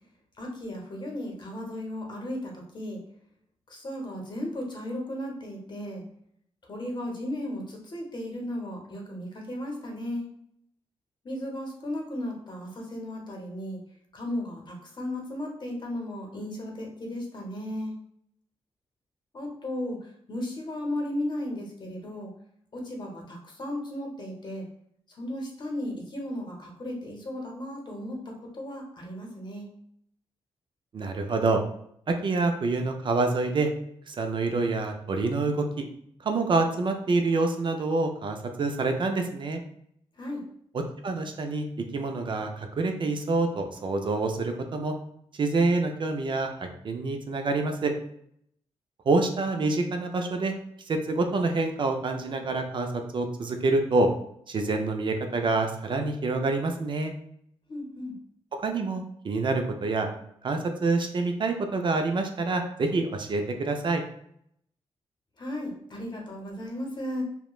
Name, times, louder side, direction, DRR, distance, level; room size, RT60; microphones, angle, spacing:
voice 1, 0.4-3.0 3.7-6.0 6.6-10.3 11.2-13.8 14.1-17.9 19.3-22.3 22.7-24.6 25.1-29.7 40.1-40.4 57.7-58.1 65.4-67.2, left 1 dB, 40° left, 0 dB, 0.8 m, -35 dB
voice 2, 30.9-31.6 32.1-33.7 34.1-35.9 36.2-39.6 41.0-41.7 41.9-44.9 45.4-47.9 49.1-50.5 50.9-54.1 54.5-57.1 58.6-60.1 60.4-64.0, right 3 dB, 45° right, 4 dB, 0.4 m, -27 dB
2.9 x 2.1 x 2.3 m, 0.69 s
cardioid pair, 70°, 11 cm